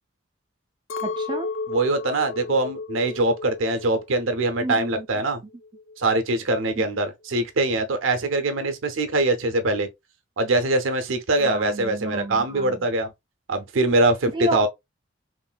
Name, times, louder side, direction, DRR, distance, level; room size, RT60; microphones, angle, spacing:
Chink clink, 0.9-5.3 5.5-6.3, left 3 dB, 75° left, 0.5 m, -34 dB
voice 1, 1.0-1.5 4.6-5.1 6.8-6.9 11.4-12.9 14.3-14.7, right 1 dB, 25° right, 0.4 m, -31 dB
voice 2, 1.7-5.4 6.0-9.9 10.4-13.1 13.5-14.7, right 2 dB, 85° right, 0.6 m, -23 dB
3.1 x 2.5 x 2.3 m
head